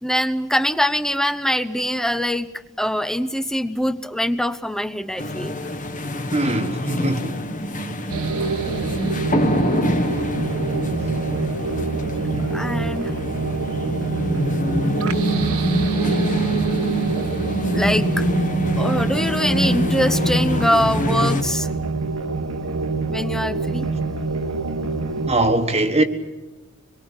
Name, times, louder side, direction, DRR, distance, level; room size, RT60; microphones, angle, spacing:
voice 1, 0.0-2.5 2.8-5.5 12.4-13.1 17.7-18.2 18.8-21.7 23.1-23.9, equal, ahead, 0.9 m, -23 dB
sound 1, 5.2-21.4, equal, 35° left, 1.8 m, -25 dB
voice 2, 6.3-7.4 25.3-26.0, right 2 dB, 30° right, 1.5 m, -21 dB
sound 2, 8.1-25.3, right 3 dB, 80° right, 1.7 m, -26 dB
25.0 x 22.5 x 8.1 m
head